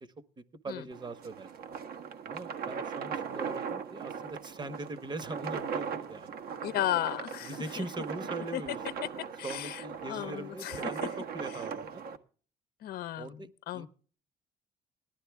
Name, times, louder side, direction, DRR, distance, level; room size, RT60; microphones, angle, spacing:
voice 1, 0.0-1.5 2.2-6.4 7.5-9.1 9.4-12.0 13.2-13.5 13.7-13.9, right 2 dB, 25° right, 14 dB, 1.2 m, -41 dB
sound 1, 0.9-12.2, right 6 dB, 65° right, 1.5 m, -39 dB
voice 2, 6.6-7.8 8.5-8.6 9.4-10.8 12.8-13.3 13.7-13.9, left 13 dB, 65° left, 14 dB, 0.8 m, -34 dB
18.0 x 12.0 x 3.5 m, 0.41 s
cardioid pair, 110°, 17 cm